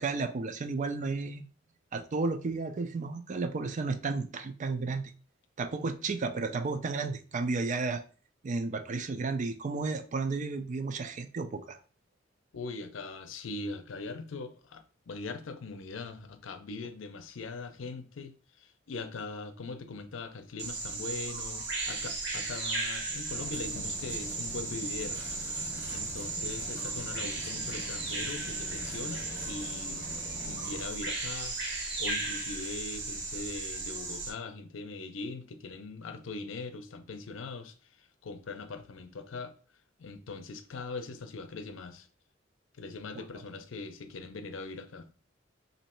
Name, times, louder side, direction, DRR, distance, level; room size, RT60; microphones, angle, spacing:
voice 1, 0.0-1.4 1.9-5.1 5.6-8.0 8.4-11.8 43.1-43.3, right 3 dB, 40° right, 0.4 m, -33 dB
voice 2, 12.5-25.2 25.9-30.1 30.4-31.6 32.0-39.5 40.0-42.1 42.8-45.1, left 3 dB, 90° left, 0.5 m, -41 dB
Bird vocalization bird call bird song, 20.6-34.3, right 3 dB, 60° right, 1.3 m, -36 dB
sound 1, 23.3-30.8, left 2 dB, 40° left, 0.8 m, -46 dB
3.1 x 2.7 x 4.3 m
head